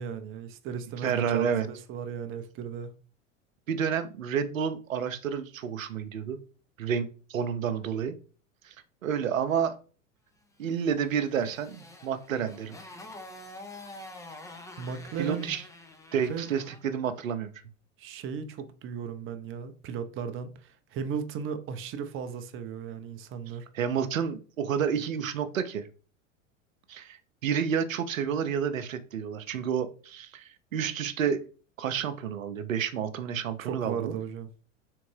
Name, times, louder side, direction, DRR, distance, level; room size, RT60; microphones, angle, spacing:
voice 1, 0.0-2.9 14.8-15.5 16.2-16.5 18.0-23.7 33.6-34.5, right 7 dB, 35° right, 0.6 m, -36 dB
voice 2, 1.0-1.7 3.7-6.4 6.8-8.1 8.6-8.7 9.0-9.7 10.6-12.8 15.2-15.6 16.1-17.5 23.7-25.9 26.9-31.4 31.8-34.1, right 7 dB, 85° right, 0.6 m, -30 dB
Motorcycle, 10.8-16.9, left 2 dB, 10° left, 0.6 m, -47 dB
3.7 x 3.4 x 3.2 m
hypercardioid pair, 90°, 39 cm